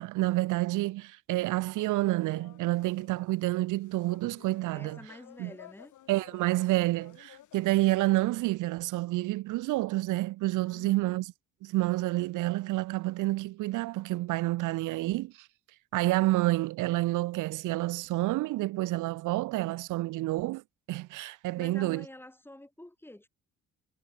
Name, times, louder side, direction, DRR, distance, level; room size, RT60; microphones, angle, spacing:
voice 1, 0.0-5.0 5.4-5.5 6.1-11.3 11.6-15.5 15.9-20.6 20.9-22.1, right 18 dB, 90° right, 0.8 m, -29 dB
sound 1, 1.8-7.8, left 12 dB, 75° left, 5.3 m, -55 dB
voice 2, 4.7-5.9 10.6-11.2 21.6-23.3, left 1 dB, 5° left, 2.4 m, -48 dB
cardioid pair, 90°, 30 cm